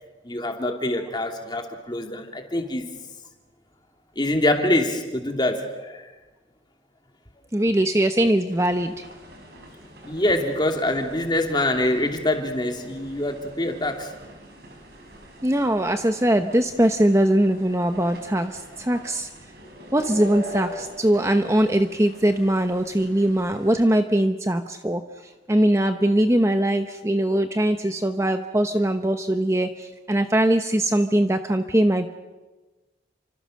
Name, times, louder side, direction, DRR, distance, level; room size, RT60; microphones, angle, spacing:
voice 1, 0.2-2.9 4.2-6.1 10.0-14.1, left 1 dB, 20° left, 4 dB, 2.8 m, -25 dB
voice 2, 7.5-9.1 15.4-19.3 19.9-32.1, right 1 dB, 15° right, 7 dB, 0.8 m, -21 dB
sound 1, 8.5-23.7, equal, 55° right, 5.4 m, -43 dB
30.0 x 25.5 x 6.5 m, 1.2 s
head